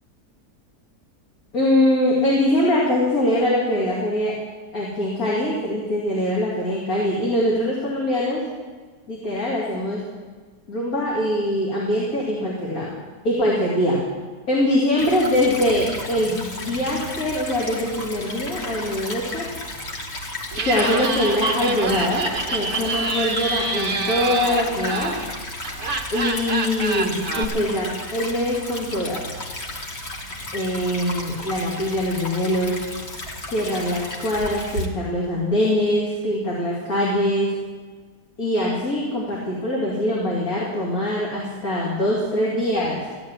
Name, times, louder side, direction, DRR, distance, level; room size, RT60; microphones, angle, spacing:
voice 1, 1.5-4.4 4.7-8.5 9.1-10.0 10.7-12.9 13.2-14.0 14.5-19.5 20.6-25.2 26.1-29.3 30.5-32.8 33.5-37.6 38.4-43.1, left 1 dB, 65° left, -6 dB, 3.3 m, -23 dB
Stream / Trickle dribble, 15.0-34.9, left 1 dB, 45° left, 1.9 m, -34 dB
Laughter, 20.5-27.4, right 4 dB, 50° right, 1.4 m, -27 dB
15.0 x 8.9 x 9.8 m, 1.4 s
omnidirectional pair, 1.6 m